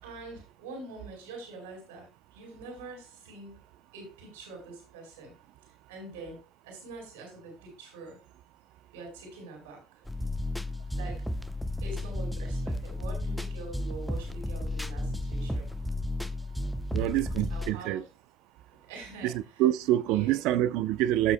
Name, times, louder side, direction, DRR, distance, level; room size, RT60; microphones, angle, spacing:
voice 1, 0.0-3.6 3.9-5.3 5.9-6.4 6.6-8.2 8.9-9.8 10.9-11.2 11.8-15.7 16.9-17.2 17.5-18.1 18.9-19.6 20.0-20.4, right 3 dB, 90° right, 4.6 m, -44 dB
sound 1, 10.1-17.7, left 1 dB, ahead, 0.8 m, -33 dB
voice 2, 16.9-18.0 19.2-19.3 19.6-21.3, right 13 dB, 70° right, 0.6 m, -26 dB
16.0 x 6.7 x 2.2 m
supercardioid pair, 80°, 0 cm